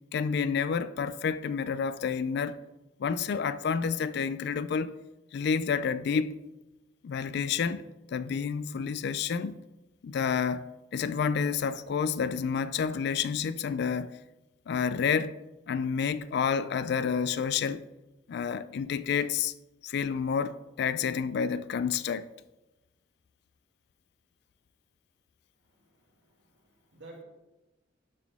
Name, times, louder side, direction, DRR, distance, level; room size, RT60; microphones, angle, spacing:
voice 1, 0.1-2.6 3.0-4.9 5.3-6.4 7.0-9.6 10.0-14.1 14.7-15.4 15.7-17.9 18.3-19.5 19.8-22.3, left 6 dB, 60° left, 0.3 m, -29 dB
voice 2, 25.6-27.2, right 2 dB, 75° right, 2.4 m, -53 dB
11.5 x 4.1 x 3.5 m
head